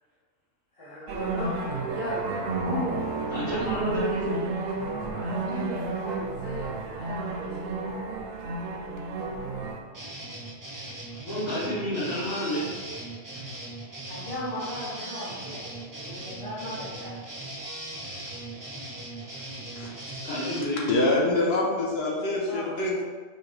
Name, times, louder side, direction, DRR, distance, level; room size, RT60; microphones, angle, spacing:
voice 1, 0.7-2.3 2.6-3.0 5.0-7.8 14.1-17.3 22.5-22.7, equal, 25° left, -11 dB, 0.9 m, -36 dB
sound 1, 1.1-9.8, right 3 dB, 65° right, 0.6 m, -32 dB
voice 2, 3.3-4.4 11.3-12.7 20.2-21.0, equal, 80° left, -16 dB, 2.0 m, -29 dB
sound 2, 9.9-20.6, right 1 dB, 30° right, 0.3 m, -39 dB
voice 3, 20.9-23.0, left 2 dB, 60° left, -2 dB, 0.9 m, -25 dB
4.4 x 2.8 x 3.2 m, 1.4 s
omnidirectional pair, 1.3 m